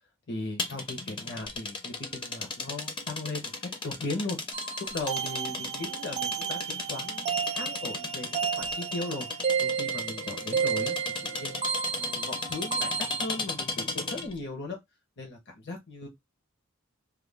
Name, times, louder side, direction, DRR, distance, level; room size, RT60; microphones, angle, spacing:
voice 1, 0.3-4.4 4.9-11.0 11.2-11.6 12.0-14.8 15.2-16.1, left 2 dB, 55° left, 0.8 m, -37 dB
sound 1, 0.6-14.4, left 3 dB, 25° left, 0.5 m, -36 dB
sound 2, 4.5-13.3, right 6 dB, 35° right, 0.4 m, -32 dB
2.4 x 2.2 x 3.3 m
head